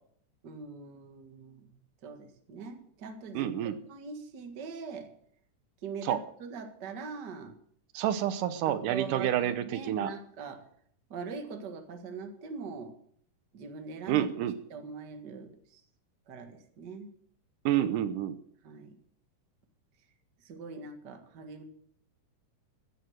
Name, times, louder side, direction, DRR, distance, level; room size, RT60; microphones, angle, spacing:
voice 1, 0.4-1.7 2.0-3.5 3.9-5.1 5.8-7.5 8.7-10.6 11.1-12.9 13.5-14.3 14.7-15.8 16.3-17.1 18.6-19.0 20.4-21.6, right 5 dB, 40° right, 5 dB, 1.8 m, -42 dB
voice 2, 3.3-3.8 6.0-6.2 7.9-10.1 14.1-14.6 17.7-18.4, right 11 dB, 80° right, 12 dB, 2.4 m, -29 dB
15.5 x 9.7 x 6.4 m, 0.63 s
omnidirectional pair, 3.7 m